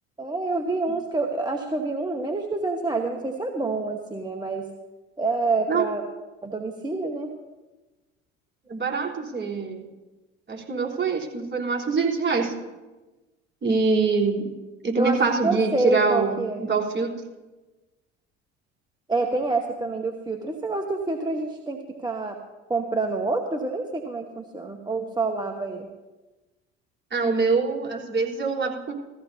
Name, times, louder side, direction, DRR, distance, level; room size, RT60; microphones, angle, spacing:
voice 1, 0.2-4.7 5.2-6.0 6.4-7.3 15.0-16.6 19.1-22.4 22.7-25.9, right 3 dB, 10° right, 3 dB, 1.3 m, -27 dB
voice 2, 8.7-9.8 10.5-12.5 13.6-14.5 14.8-17.2 27.1-28.9, right 4 dB, 30° right, -2 dB, 3.9 m, -24 dB
17.5 x 15.0 x 2.8 m, 1.1 s
hypercardioid pair, 65°, 35 cm